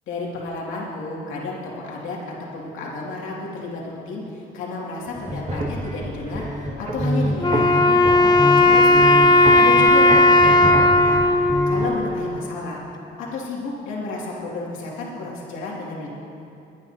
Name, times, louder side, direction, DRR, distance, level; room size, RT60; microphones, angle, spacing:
voice 1, 0.1-12.8 13.2-16.1, left 3 dB, 85° left, -4 dB, 2.5 m, -31 dB
sound 1, 5.1-11.8, equal, 40° right, 2.1 m, -27 dB
Wind instrument woodwind instrument, 7.4-12.6, left 2 dB, 20° left, 0.7 m, -16 dB
21.0 x 9.8 x 2.9 m, 2.7 s
cardioid pair, 90°, 20 cm